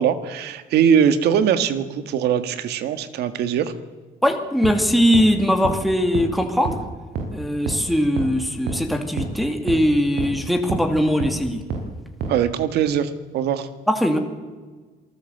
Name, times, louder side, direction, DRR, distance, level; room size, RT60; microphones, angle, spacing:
voice 1, 0.0-3.7 12.3-13.7, right 8 dB, 90° right, 10 dB, 1.9 m, -21 dB
voice 2, 4.2-6.8 7.3-11.6 13.9-14.2, equal, ahead, 4 dB, 2.5 m, -20 dB
sound 1, 4.6-4.7 5.1-5.2 5.6-5.7 6.1-6.2 6.7-6.8 7.2-7.3 7.7-7.8 8.2-8.3 8.7-8.8 9.2-9.3 9.7-9.8 10.2-10.3 10.7-10.8 11.2-11.3 11.7-11.8 12.2-12.3, right 6 dB, 70° right, 8.0 m, -26 dB
27.5 x 19.5 x 8.1 m, 1.4 s
cardioid pair, 155°, 16 cm